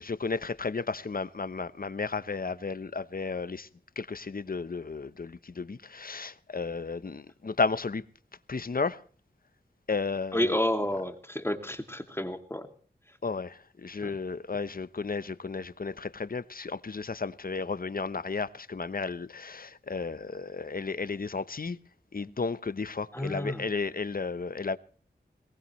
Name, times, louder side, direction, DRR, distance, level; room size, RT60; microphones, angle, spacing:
voice 1, 0.0-3.7 4.0-8.0 8.5-9.0 9.9-10.5 13.2-21.8 22.1-24.8, left 4 dB, 55° left, 1.0 m, -33 dB
voice 2, 10.3-12.7 14.0-14.1 23.1-23.6, left 1 dB, 15° left, 2.7 m, -30 dB
22.5 x 18.5 x 3.2 m
wide cardioid pair, 50°, 18 cm